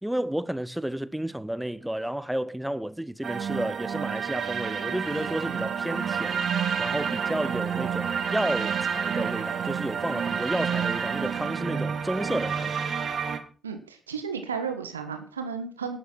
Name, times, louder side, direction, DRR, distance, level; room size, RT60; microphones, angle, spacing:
voice 1, 0.0-6.4 6.8-12.8, right 1 dB, 5° right, 0.8 m, -31 dB
sound 1, 3.2-13.4, right 7 dB, 45° right, 1.7 m, -29 dB
voice 2, 13.6-16.0, right 6 dB, 80° right, 1.4 m, -33 dB
11.0 x 8.7 x 6.0 m
figure-of-eight pair, 40°, 0 cm